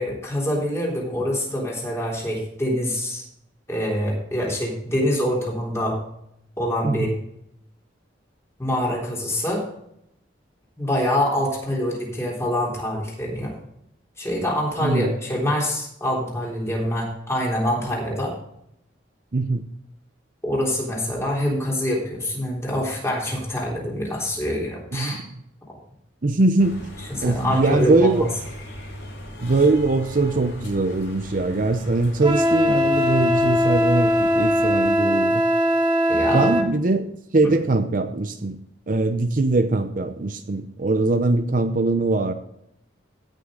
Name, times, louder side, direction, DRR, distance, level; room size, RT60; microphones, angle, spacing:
voice 1, 0.0-3.2 3.7-6.0 6.6-7.1 8.6-9.6 10.8-13.5 14.2-18.3 20.4-25.3 27.2-28.2 36.1-36.5 37.4-37.5, left 1 dB, 15° left, -3 dB, 3.6 m, -25 dB
voice 2, 14.8-15.2 19.3-19.6 24.9-25.3 26.2-26.9 27.2-28.3 29.4-35.4 36.3-38.6 38.9-42.3, right 2 dB, 45° right, 9 dB, 0.6 m, -21 dB
sound 1, 26.6-34.9, equal, 80° left, 5.1 m, -38 dB
Wind instrument woodwind instrument, 32.2-36.7, equal, 25° right, 1.4 m, -20 dB
17.0 x 6.5 x 3.8 m, 0.76 s
head